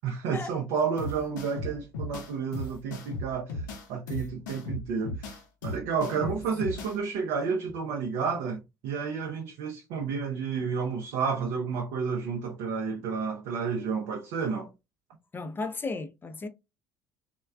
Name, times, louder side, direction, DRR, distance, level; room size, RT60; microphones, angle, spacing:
voice 1, 0.0-14.7, right 5 dB, 60° right, 0.5 m, -31 dB
sound 1, 1.0-7.0, left 2 dB, 75° left, 0.5 m, -37 dB
voice 2, 6.2-6.9 15.3-16.5, left 3 dB, 20° left, 0.4 m, -36 dB
3.0 x 2.2 x 2.3 m
figure-of-eight pair, 60°, 10 cm